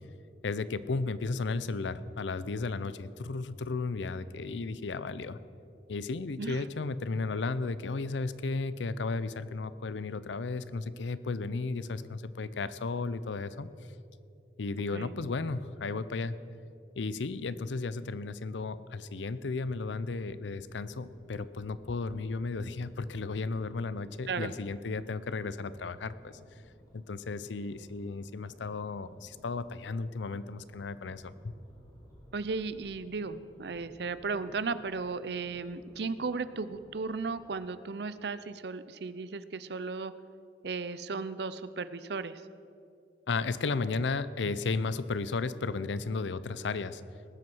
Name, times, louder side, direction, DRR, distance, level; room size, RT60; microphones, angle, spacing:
voice 1, 0.4-5.4 5.9-13.7 14.6-16.4 17.0-26.4 26.9-31.5 43.3-47.0, left 3 dB, 85° left, 15 dB, 0.6 m, -34 dB
sound 1, 19.4-37.7, equal, 20° left, 1.9 m, -59 dB
voice 2, 32.3-40.1 40.6-42.4, right 4 dB, 65° right, 14 dB, 0.6 m, -35 dB
19.5 x 7.7 x 6.2 m, 2.5 s
head